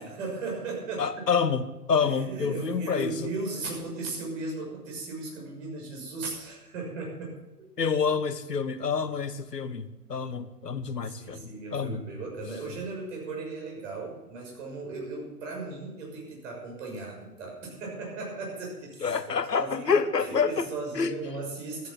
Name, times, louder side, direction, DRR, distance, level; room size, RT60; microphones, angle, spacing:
voice 1, 0.0-1.3 2.0-7.4 11.0-21.9, right 3 dB, 50° right, -1 dB, 6.4 m, -37 dB
voice 2, 1.0-3.1 7.8-12.0 19.0-20.7 20.9-21.1, left 6 dB, 80° left, 12 dB, 1.1 m, -28 dB
13.5 x 9.6 x 6.4 m, 1.0 s
figure-of-eight pair, 110°, 48 cm